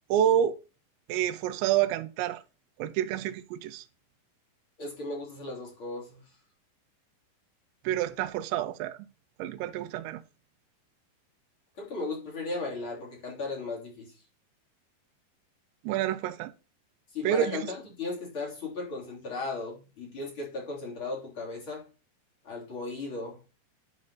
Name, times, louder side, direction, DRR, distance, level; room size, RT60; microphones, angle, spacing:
voice 1, 0.1-0.6 1.1-2.4 2.8-3.8 7.8-9.0 9.4-10.2 15.8-16.5 17.2-17.6, right 10 dB, 85° right, 2.9 m, -28 dB
voice 2, 4.8-6.2 11.8-14.1 17.1-21.8 22.4-23.4, left 3 dB, 30° left, 3.5 m, -36 dB
11.0 x 4.8 x 4.2 m
omnidirectional pair, 5.1 m